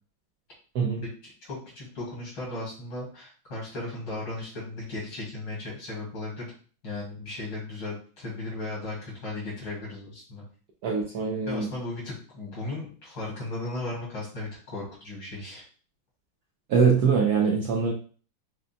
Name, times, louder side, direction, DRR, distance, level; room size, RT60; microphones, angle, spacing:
voice 1, 1.2-6.5 6.8-10.4 11.4-15.6, left 2 dB, 70° left, -4 dB, 3.2 m, -36 dB
voice 2, 10.8-11.7 16.7-17.9, right 5 dB, 75° right, 0 dB, 0.9 m, -23 dB
6.5 x 2.6 x 2.2 m, 0.40 s
omnidirectional pair, 2.3 m